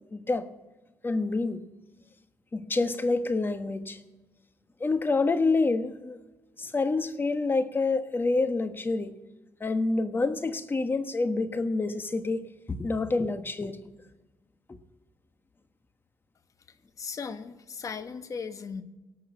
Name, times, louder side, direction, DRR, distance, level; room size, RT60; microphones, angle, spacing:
voice 1, 0.1-0.5 1.0-1.6 2.5-4.0 4.8-6.2 6.6-9.1 9.6-13.9, left 3 dB, 30° left, 9 dB, 1.3 m, -27 dB
voice 2, 16.7-18.8, left 5 dB, 45° left, 10 dB, 1.2 m, -38 dB
18.0 x 6.4 x 8.6 m, 1.1 s
cardioid pair, 80°, 8 cm